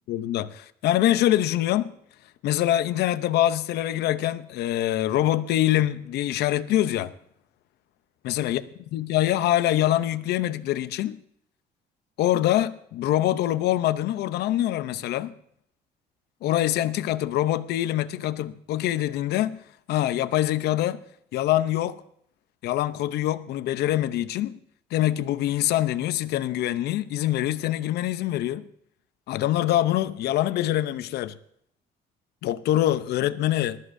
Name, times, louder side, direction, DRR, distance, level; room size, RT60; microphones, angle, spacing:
voice 1, 0.1-1.9 2.4-7.1 8.2-8.6 8.9-11.2 12.2-15.3 16.4-21.0 21.3-22.0 22.6-24.6 24.9-28.7 29.3-31.4 32.4-33.8, left 13 dB, 75° left, 0.7 m, -24 dB
20.5 x 13.0 x 2.7 m
cardioid pair, 110°, 17 cm